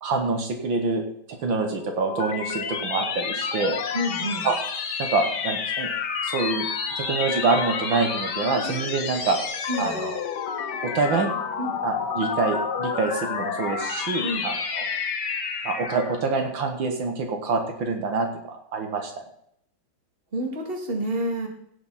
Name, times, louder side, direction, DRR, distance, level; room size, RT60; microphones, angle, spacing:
voice 1, 0.0-1.0 1.4-3.8 4.4-4.6 5.0-5.9 6.2-6.7 7.0-9.4 9.8-10.2 10.8-11.3 11.8-14.9 15.7-19.1, right 4 dB, 75° right, 4 dB, 2.0 m, -26 dB
sound 1, 1.6-16.2, left 6 dB, 60° left, 1.7 m, -30 dB
voice 2, 3.9-4.4 9.7-9.9 11.6-11.7 14.2-14.4 20.3-21.5, equal, 30° right, 1 dB, 2.3 m, -28 dB
16.5 x 7.3 x 4.2 m, 0.69 s
omnidirectional pair, 2.2 m